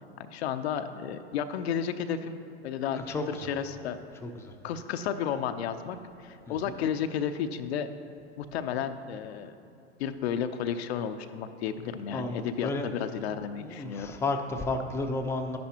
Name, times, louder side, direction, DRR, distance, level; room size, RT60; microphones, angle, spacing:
voice 1, 0.2-2.4 2.6-4.0 4.6-7.9 8.4-9.5 10.0-14.1, left 8 dB, 65° left, 8 dB, 0.6 m, -32 dB
voice 2, 4.2-4.5 6.5-6.7 12.1-12.9 13.6-15.6, left 2 dB, 10° left, 3 dB, 0.6 m, -32 dB
11.0 x 10.5 x 2.9 m, 2.6 s
hypercardioid pair, 95°, 34 cm